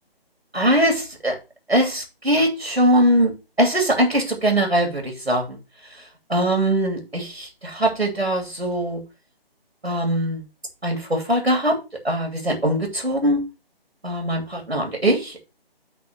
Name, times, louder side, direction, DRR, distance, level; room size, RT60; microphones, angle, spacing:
voice 1, 0.5-1.4 1.7-3.3 3.6-5.6 6.3-9.0 9.8-10.4 10.8-11.8 12.0-13.4 14.0-15.5, right 1 dB, 90° right, 2 dB, 3.0 m, -21 dB
8.6 x 3.9 x 6.2 m, 0.28 s
figure-of-eight pair, 150°, 30 cm